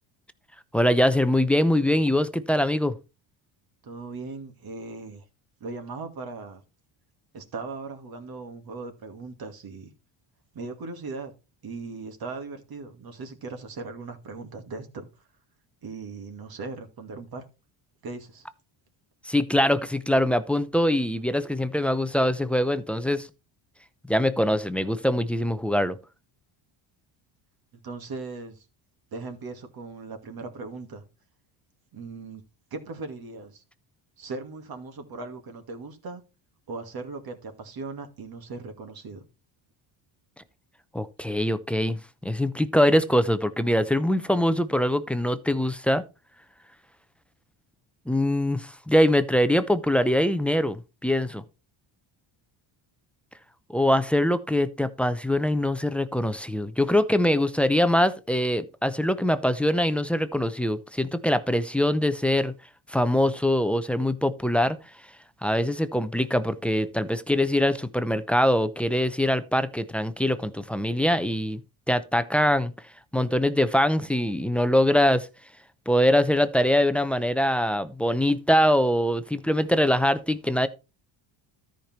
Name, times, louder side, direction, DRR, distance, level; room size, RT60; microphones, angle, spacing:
voice 1, 0.7-3.0 19.3-23.3 24.1-26.0 40.9-46.0 48.1-51.4 53.7-62.5 62.9-64.8 65.4-71.6 71.9-72.7 73.1-75.3 75.9-80.7, left 1 dB, 5° left, 0.6 m, -23 dB
voice 2, 3.8-5.2 5.6-6.6 7.3-9.9 10.5-11.3 11.6-15.1 15.8-17.4 18.0-18.5 27.8-28.7 29.1-31.0 31.9-32.4 32.7-33.6 34.2-36.2 36.7-39.2, right 3 dB, 45° right, 2.3 m, -38 dB
13.5 x 5.2 x 4.4 m
cardioid pair, 140°, 49 cm